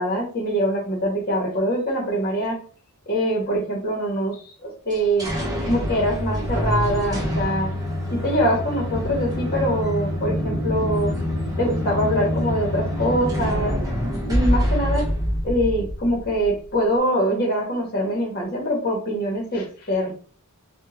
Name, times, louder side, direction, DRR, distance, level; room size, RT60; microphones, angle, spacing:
voice 1, 0.0-2.6 3.1-5.3 5.6-7.7 8.1-11.1 11.6-13.8 14.3-15.1 15.4-20.1, equal, 45° left, -1 dB, 1.2 m, -23 dB
sound 1, 4.9-16.5, equal, 15° right, 0.9 m, -25 dB
3.5 x 2.3 x 2.8 m, 0.42 s
head